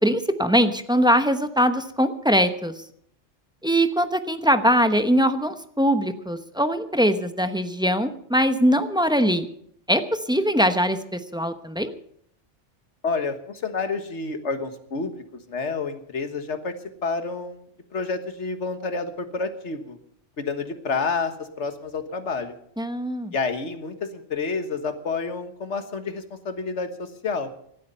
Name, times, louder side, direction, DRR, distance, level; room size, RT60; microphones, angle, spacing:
voice 1, 0.0-2.7 3.6-9.5 9.9-11.9 22.8-23.3, equal, 5° right, 8 dB, 0.9 m, -22 dB
voice 2, 13.0-16.7 17.0-17.7 17.9-20.0 20.4-22.5 23.3-27.5, left 4 dB, 80° left, 8 dB, 1.8 m, -29 dB
17.5 x 12.5 x 5.5 m, 0.68 s
omnidirectional pair, 1.2 m